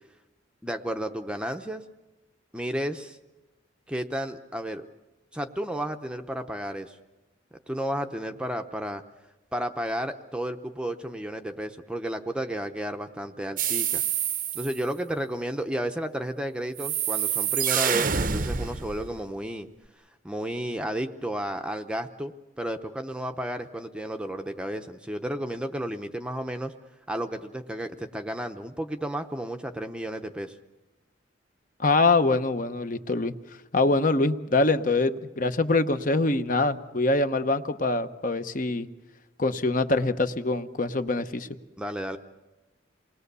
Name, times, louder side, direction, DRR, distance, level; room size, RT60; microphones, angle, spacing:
voice 1, 0.6-1.8 2.5-3.2 3.9-4.8 5.3-7.0 7.7-9.0 9.5-14.0 14.5-19.7 20.2-26.7 27.1-30.6 41.8-42.2, right 1 dB, 5° right, 6 dB, 0.7 m, -32 dB
sound 1, 13.6-14.8 16.8-19.2, right 8 dB, 45° right, 0.7 m, -27 dB
voice 2, 31.8-33.3 33.7-38.9 39.4-41.5, left 3 dB, 45° left, 10 dB, 1.0 m, -24 dB
28.5 x 20.5 x 6.9 m, 1.1 s
head